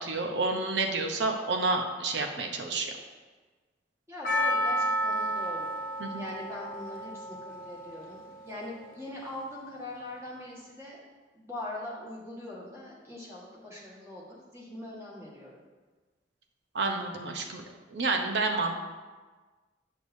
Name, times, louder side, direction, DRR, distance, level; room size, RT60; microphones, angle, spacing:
voice 1, 0.0-2.9 6.0-6.2 16.7-17.6 17.9-18.8, right 3 dB, 75° right, 3 dB, 0.7 m, -29 dB
voice 2, 4.1-5.7 6.1-11.0 11.3-15.6, left 1 dB, 15° right, -5 dB, 1.5 m, -42 dB
Percussion, 4.2-9.2, equal, 50° left, 0.7 m, -32 dB
7.9 x 6.7 x 2.7 m, 1.3 s
head